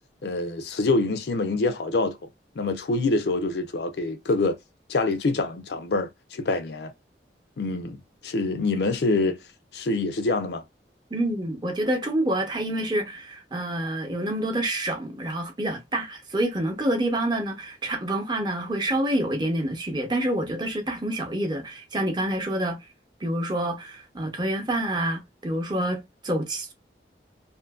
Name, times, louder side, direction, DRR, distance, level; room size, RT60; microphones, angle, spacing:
voice 1, 0.2-2.2 2.6-4.6 4.9-6.9 7.6-9.4 9.7-10.6, left 3 dB, 70° left, 0.5 m, -25 dB
voice 2, 11.1-22.8 23.2-26.7, right 1 dB, 25° right, 0.7 m, -27 dB
2.7 x 2.5 x 2.2 m
head